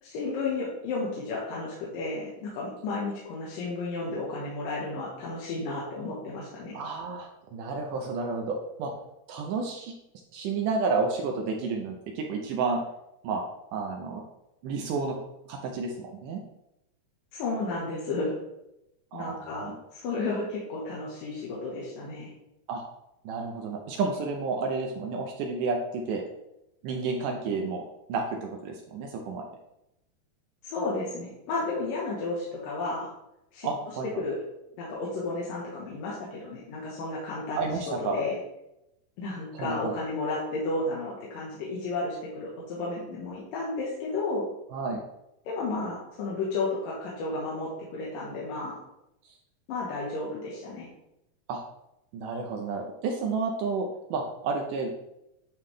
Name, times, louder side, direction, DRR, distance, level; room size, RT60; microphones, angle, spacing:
voice 1, 0.0-6.8 17.3-18.4 19.1-22.3 30.6-33.1 33.5-33.7 34.2-34.4 34.8-38.4 39.2-44.4 45.5-48.8 49.7-50.9, left 3 dB, 75° left, -6 dB, 2.7 m, -32 dB
voice 2, 6.7-8.9 9.3-9.9 10.3-12.8 13.2-13.4 13.7-14.2 14.6-15.2 15.5-16.4 19.1-19.8 22.7-22.8 23.3-26.2 26.8-29.5 33.6-34.1 37.6-38.2 39.5-39.9 44.7-45.0 51.5-51.6 52.1-54.9, right 4 dB, 75° right, 2 dB, 2.0 m, -31 dB
9.3 x 3.5 x 3.2 m, 0.87 s
omnidirectional pair, 4.1 m